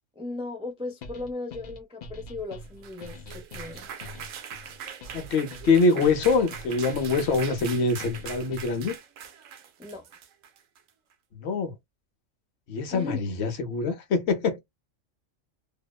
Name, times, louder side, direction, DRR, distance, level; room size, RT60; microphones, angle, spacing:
voice 1, 0.1-3.9 9.8-10.1 12.9-13.2, left 3 dB, 10° right, 0.3 m, -37 dB
sound 1, 1.0-8.9, left 2 dB, 80° left, 0.4 m, -44 dB
sound 2, 2.6-10.9, right 8 dB, 85° right, 1.0 m, -42 dB
voice 2, 5.1-8.9 11.3-11.7 12.7-14.6, left 4 dB, 60° left, 0.9 m, -24 dB
2.7 x 2.0 x 2.2 m
omnidirectional pair, 1.3 m